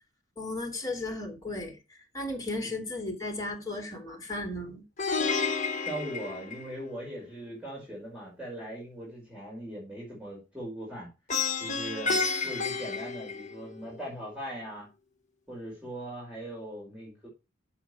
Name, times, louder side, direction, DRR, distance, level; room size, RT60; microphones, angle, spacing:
voice 1, 0.4-1.8 2.1-4.8, left 2 dB, 20° left, 2.9 m, -35 dB
Plucked string instrument, 5.0-7.1 11.3-13.9, left 4 dB, 40° left, 1.2 m, -31 dB
voice 2, 5.8-11.1 11.6-14.9 15.5-17.3, right 1 dB, 5° right, 5.3 m, -40 dB
8.0 x 7.4 x 4.7 m
head